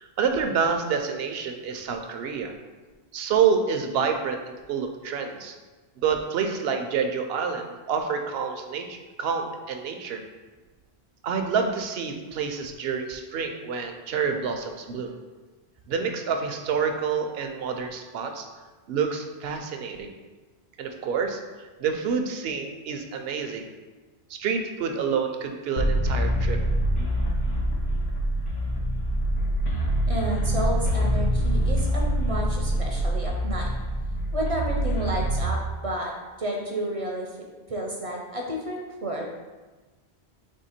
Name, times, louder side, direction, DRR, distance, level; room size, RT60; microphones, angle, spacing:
voice 1, 0.0-2.5 3.1-5.5 6.0-10.2 11.2-15.2 15.9-18.5 18.9-20.1 20.8-23.6 24.3-26.6, right 6 dB, 75° right, 5 dB, 0.8 m, -28 dB
sound 1, 25.8-35.6, equal, 75° left, 1.0 m, -25 dB
voice 2, 30.1-33.7 34.3-35.6 35.8-36.1 36.4-37.3 37.7-39.4, right 1 dB, 45° right, 0 dB, 0.5 m, -31 dB
3.6 x 3.2 x 4.2 m, 1.3 s
omnidirectional pair, 1.1 m